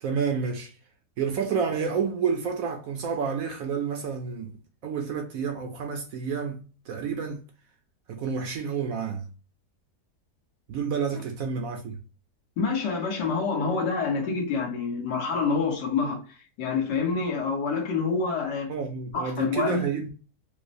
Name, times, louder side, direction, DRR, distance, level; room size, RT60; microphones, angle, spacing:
voice 1, 0.0-0.7 1.2-4.6 4.8-7.4 8.1-9.3 10.7-12.0 18.7-20.2, right 6 dB, 65° right, 0.9 m, -29 dB
voice 2, 12.6-16.2 16.6-18.7 19.1-19.9, left 4 dB, 80° left, 1.6 m, -27 dB
4.8 x 2.0 x 2.6 m
omnidirectional pair, 1.8 m